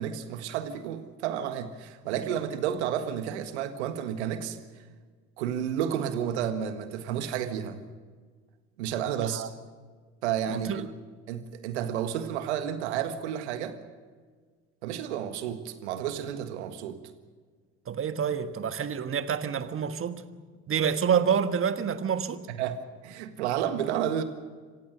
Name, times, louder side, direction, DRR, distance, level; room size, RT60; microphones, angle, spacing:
voice 1, 0.0-4.6 5.4-7.8 8.8-9.5 10.2-10.9 11.3-13.8 14.8-17.0 22.5-24.2, right 9 dB, 80° right, 1.7 m, -31 dB
voice 2, 10.5-10.8 17.9-20.2 20.7-22.4, right 7 dB, 40° right, 1.5 m, -28 dB
26.5 x 15.5 x 6.8 m
hypercardioid pair, 65°, 34 cm